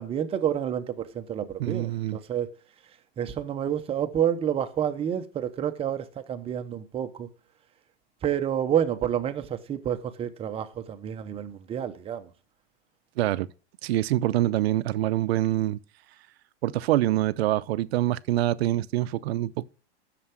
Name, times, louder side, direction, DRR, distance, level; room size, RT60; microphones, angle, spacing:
voice 1, 0.0-2.5 3.2-7.3 8.2-12.3, right 9 dB, 15° right, 0.9 m, -29 dB
voice 2, 1.6-2.2 13.2-13.5 13.8-15.8 16.6-19.7, right 14 dB, 65° right, 0.7 m, -25 dB
11.0 x 6.9 x 6.1 m
supercardioid pair, 155°, 34 cm